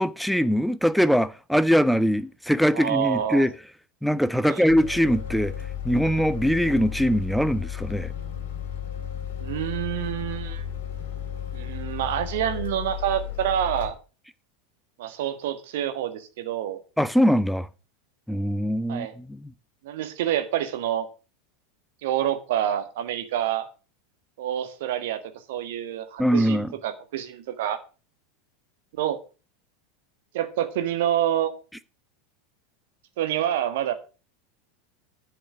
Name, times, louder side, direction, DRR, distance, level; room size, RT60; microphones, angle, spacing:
voice 1, 0.0-3.5 4.0-5.5 5.8-8.1 17.0-17.7 18.3-19.5 26.2-26.7, equal, ahead, 0.5 m, -22 dB
voice 2, 2.7-3.5 4.4-4.6 9.4-10.6 11.5-13.9 15.0-16.8 18.9-19.1 19.8-21.1 22.0-23.7 24.4-27.8 28.9-29.2 30.3-31.5 33.2-33.9, right 11 dB, 55° right, 1.5 m, -27 dB
sound 1, 4.7-13.9, left 9 dB, 60° left, 2.4 m, -34 dB
10.0 x 5.8 x 7.2 m
figure-of-eight pair, 85°, 0 cm